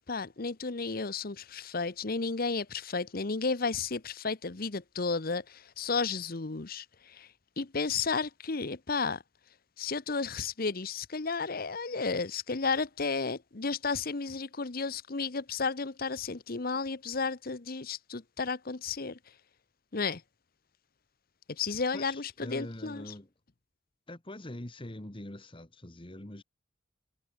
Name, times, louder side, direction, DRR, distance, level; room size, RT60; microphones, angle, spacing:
voice 1, 0.1-7.3 7.6-9.2 9.8-19.2 19.9-20.2 21.5-23.0, left 4 dB, 50° left, 1.0 m, -33 dB
voice 2, 21.9-23.3 24.1-26.4, left 1 dB, 25° left, 1.6 m, -43 dB
head